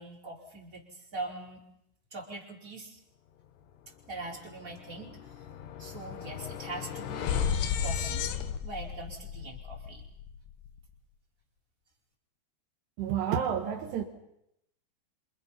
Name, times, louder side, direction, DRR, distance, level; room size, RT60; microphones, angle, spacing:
voice 1, 0.0-1.6 2.1-3.0 4.1-5.4 5.8-7.5 7.8-8.3 8.6-10.0, right 2 dB, 20° right, 5.0 m, -42 dB
sound 1, 4.1-4.3 4.6-10.8, left 7 dB, 75° left, 3.2 m, -34 dB
voice 2, 13.0-14.0, right 8 dB, 75° right, 3.5 m, -30 dB
28.0 x 28.0 x 5.8 m
omnidirectional pair, 5.1 m